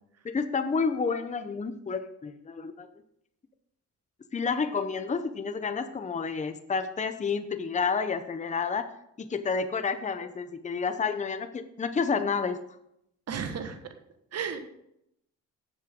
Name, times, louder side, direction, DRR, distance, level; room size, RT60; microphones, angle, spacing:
voice 1, 0.2-2.9 4.3-8.9 9.2-12.6, left 5 dB, 25° left, 9 dB, 0.8 m, -30 dB
voice 2, 13.3-13.8 14.3-14.7, right 6 dB, 55° right, 7 dB, 1.5 m, -33 dB
12.0 x 7.8 x 3.7 m, 0.78 s
cardioid pair, 90°, 30 cm